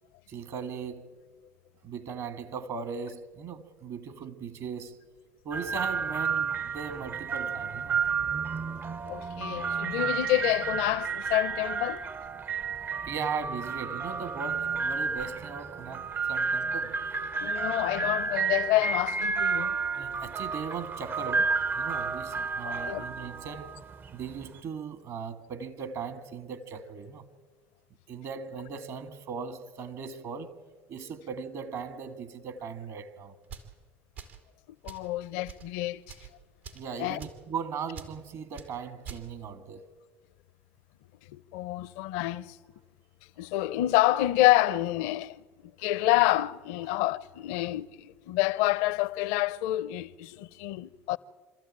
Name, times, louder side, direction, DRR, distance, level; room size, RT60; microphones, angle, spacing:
voice 1, 0.3-1.1 1.8-5.0 5.4-8.0 13.0-17.0 19.9-23.8 24.1-27.3 28.1-30.6 30.9-33.3 36.7-39.9, right 6 dB, 60° right, 2.0 m, -38 dB
sound 1, 5.5-24.6, right 5 dB, 30° right, 0.5 m, -31 dB
voice 2, 9.0-12.1 17.4-19.8 22.6-23.0 34.8-36.0 37.0-37.2 41.3-42.6 43.4-45.4 45.8-51.2, left 16 dB, 75° left, 0.6 m, -28 dB
sound 2, 33.4-33.7 34.1-34.4 34.8-35.1 35.4-35.7 36.0-36.3 36.6-36.9 37.2-37.4 37.9-38.1 38.5-38.7 39.0-39.2, right 6 dB, 90° right, 2.8 m, -44 dB
27.0 x 13.5 x 8.8 m
hypercardioid pair, 75°, 6 cm